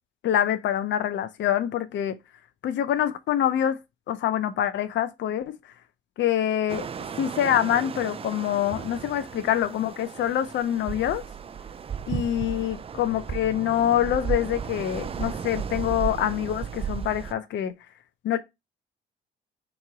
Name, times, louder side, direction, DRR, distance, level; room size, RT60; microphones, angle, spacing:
voice 1, 0.2-2.1 2.6-3.8 4.1-5.5 6.2-6.9 7.2-11.2 12.1-17.7 18.2-18.4, left 11 dB, 65° left, 0.5 m, -25 dB
sound 1, 6.7-17.3, right 7 dB, 30° right, 0.4 m, -34 dB
3.8 x 3.0 x 4.7 m
cardioid pair, 90°, 20 cm